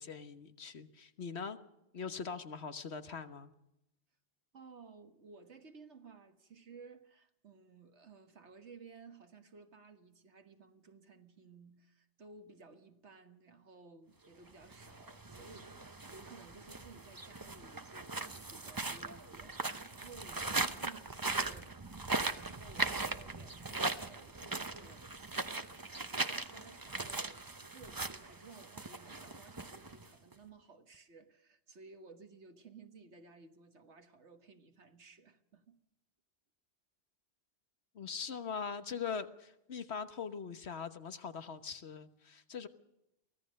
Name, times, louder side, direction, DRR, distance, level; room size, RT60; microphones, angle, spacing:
voice 1, 0.0-1.6 1.9-3.5 37.9-42.7, left 6 dB, 70° left, 1.5 m, -42 dB
voice 2, 4.5-21.8 22.3-25.1 26.2-27.3 27.6-35.8, right 4 dB, 80° right, 1.9 m, -56 dB
sound 1, 14.6-30.3, right 3 dB, 20° right, 0.8 m, -39 dB
24.0 x 17.0 x 6.5 m
omnidirectional pair, 1.2 m